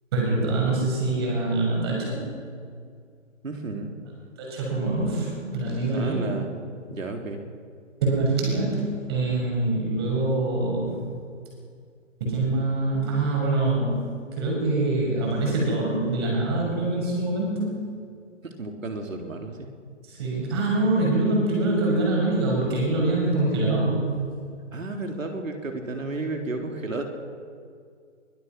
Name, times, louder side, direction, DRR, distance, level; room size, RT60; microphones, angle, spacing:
voice 1, 0.1-2.3 4.4-6.3 8.0-11.0 12.2-14.0 14.3-17.8 20.0-24.2, right 2 dB, 20° right, -2 dB, 6.2 m, -24 dB
voice 2, 3.4-3.9 5.9-6.5 6.9-7.5 18.4-19.7 24.7-27.0, right 3 dB, 85° right, 3 dB, 3.8 m, -32 dB
24.5 x 21.0 x 6.1 m, 2.1 s
hypercardioid pair, 175°, 38 cm